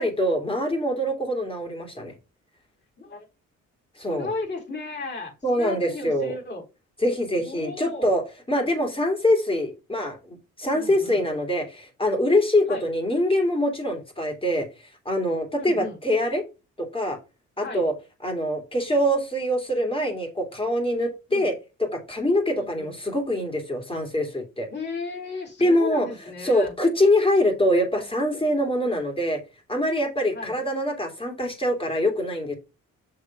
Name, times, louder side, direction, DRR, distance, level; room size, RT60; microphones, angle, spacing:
voice 1, 0.0-2.1 4.0-4.3 5.4-6.4 7.0-8.2 8.5-14.7 15.0-16.4 16.8-17.2 17.6-17.9 18.2-24.7 25.6-26.1 26.4-29.4 29.7-32.5, left 1 dB, 20° left, 3.0 m, -24 dB
voice 2, 4.1-6.6 7.3-8.1 10.7-11.2 12.7-12.8 15.6-16.0 17.6-17.8 21.3-21.5 22.5-22.9 24.7-26.7 28.8-29.0 30.3-30.6, left 3 dB, 35° left, 4.4 m, -35 dB
6.6 x 3.7 x 5.9 m
cardioid pair, 90°, 30 cm